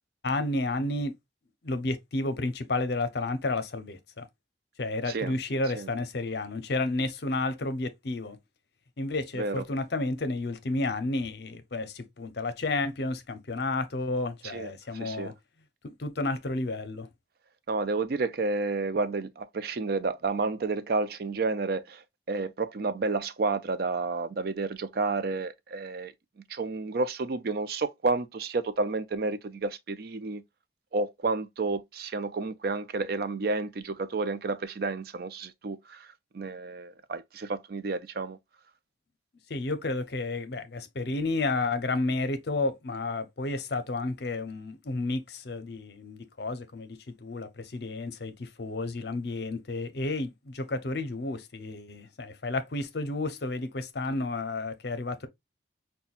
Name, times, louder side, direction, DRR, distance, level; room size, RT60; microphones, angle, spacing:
voice 1, 0.2-1.1 1.6-4.3 4.8-8.4 9.0-15.3 15.8-17.1 39.5-55.3, left 2 dB, 60° left, 0.6 m, -31 dB
voice 2, 15.0-15.3 17.7-22.0 22.3-26.1 26.5-30.4 30.9-36.1 36.3-38.4, right 3 dB, 55° right, 0.4 m, -30 dB
5.6 x 2.2 x 2.4 m
head